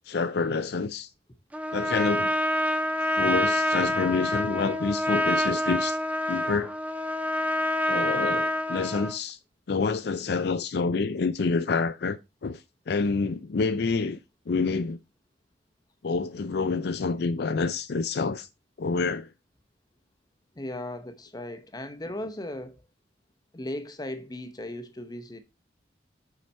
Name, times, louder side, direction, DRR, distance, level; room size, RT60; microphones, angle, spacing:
voice 1, 0.1-1.1 1.7-2.3 3.2-6.0 6.3-6.7 7.9-9.4 9.7-12.6 12.9-14.2 14.5-15.0 16.0-18.5 18.8-19.3, left 4 dB, 60° left, 0.4 m, -27 dB
Trumpet, 1.5-9.2, left 1 dB, 10° right, 0.6 m, -27 dB
voice 2, 20.6-22.9 23.5-25.4, left 1 dB, 20° left, 0.8 m, -37 dB
7.0 x 4.9 x 4.3 m
head